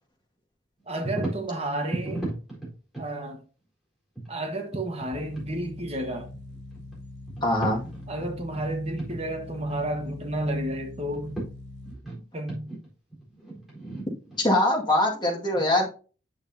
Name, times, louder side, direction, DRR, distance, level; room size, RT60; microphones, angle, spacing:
voice 1, 0.9-2.3 3.0-3.4 4.3-6.3 8.1-11.4 12.3-12.7 15.6-15.7, right 1 dB, 35° right, 1.4 m, -31 dB
sound 1, 1.0-1.5 1.9-3.1 4.2-5.1 5.3-5.5 6.2-7.0 7.3-8.7 9.0-9.2 9.5-10.5 11.1-11.5 11.8-14.5, right 2 dB, ahead, 4.1 m, -36 dB
sound 2, 5.1-11.9, left 2 dB, 60° left, 2.3 m, -43 dB
voice 2, 7.4-7.8 14.4-15.8, left 1 dB, 25° left, 2.0 m, -22 dB
8.8 x 7.0 x 2.8 m
head